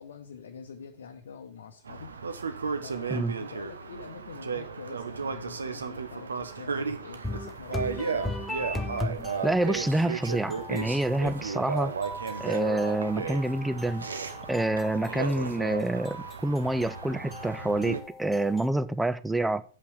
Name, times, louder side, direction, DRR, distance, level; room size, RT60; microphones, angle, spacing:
voice 1, 0.0-2.1 2.8-8.7, left 6 dB, 65° left, 0.8 m, -45 dB
sound 1, 1.9-18.0, right 5 dB, 75° right, 1.0 m, -35 dB
sound 2, 7.2-18.7, left 2 dB, 10° left, 0.9 m, -39 dB
voice 2, 9.4-11.9 12.4-14.1 14.5-19.6, right 1 dB, 5° right, 0.5 m, -27 dB
7.6 x 5.7 x 6.1 m
figure-of-eight pair, 105°, 0 cm